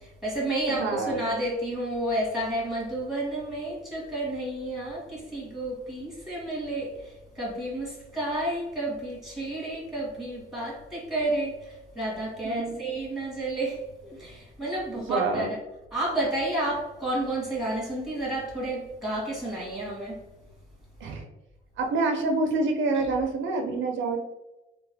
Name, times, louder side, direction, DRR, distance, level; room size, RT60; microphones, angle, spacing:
voice 1, 0.0-15.6 15.9-20.2 22.9-23.0, right 1 dB, ahead, -5 dB, 1.5 m, -31 dB
voice 2, 0.7-1.2 12.4-12.7 14.9-15.5 21.0-21.2 21.8-24.2, right 3 dB, 75° right, 3 dB, 0.5 m, -27 dB
3.0 x 2.3 x 2.7 m, 0.98 s
cardioid pair, 90°, 20 cm